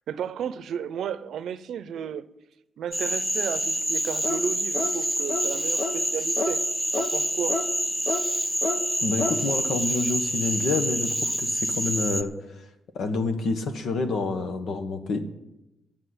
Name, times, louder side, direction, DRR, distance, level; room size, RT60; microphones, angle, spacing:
voice 1, 0.1-2.3 2.8-6.6 7.0-7.6, right 8 dB, 80° right, 15 dB, 0.6 m, -33 dB
Cricket / Frog, 2.9-12.2, right 1 dB, ahead, 0.5 m, -27 dB
sound 1, 4.2-4.5 4.7-5.0 5.3-5.5 5.8-6.0 6.4-6.5 6.9-7.1 7.5-7.7 8.1-8.2 8.6-8.8 9.2-9.4, left 3 dB, 25° left, 0.9 m, -29 dB
voice 2, 9.0-12.7 12.9-15.2, left 3 dB, 65° left, 7 dB, 1.5 m, -28 dB
11.5 x 7.2 x 9.6 m, 0.91 s
wide cardioid pair, 170°, 0 cm